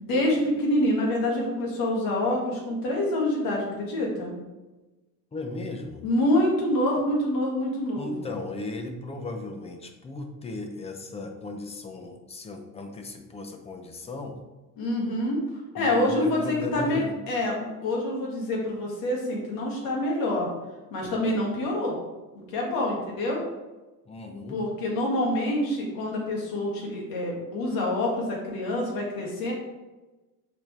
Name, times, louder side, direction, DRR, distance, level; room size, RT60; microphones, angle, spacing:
voice 1, 0.0-4.3 6.0-8.3 14.8-15.4 15.7-20.5 20.9-22.0 22.5-23.4 24.5-29.5, left 1 dB, 70° left, -1 dB, 2.1 m, -26 dB
voice 2, 5.3-6.0 8.0-14.4 15.8-17.2 24.1-24.6, left 2 dB, 15° left, 5 dB, 0.6 m, -36 dB
6.8 x 5.1 x 3.3 m, 1.1 s
cardioid pair, 170°, 36 cm